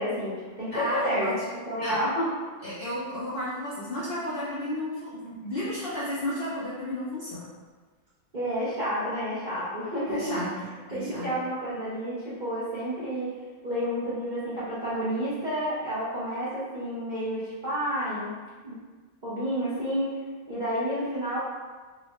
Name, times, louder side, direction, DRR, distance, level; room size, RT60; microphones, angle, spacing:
voice 1, 0.0-1.3 1.7-2.3 8.3-10.4 10.9-13.3 13.6-18.3 18.6-18.8 19.2-20.2 20.5-21.4, equal, 50° right, -11 dB, 0.5 m, -30 dB
voice 2, 0.7-1.3 1.8-2.0 2.6-7.5 10.1-11.3, left 1 dB, 60° left, -10 dB, 0.5 m, -33 dB
3.8 x 2.1 x 2.9 m, 1.4 s
omnidirectional pair, 1.8 m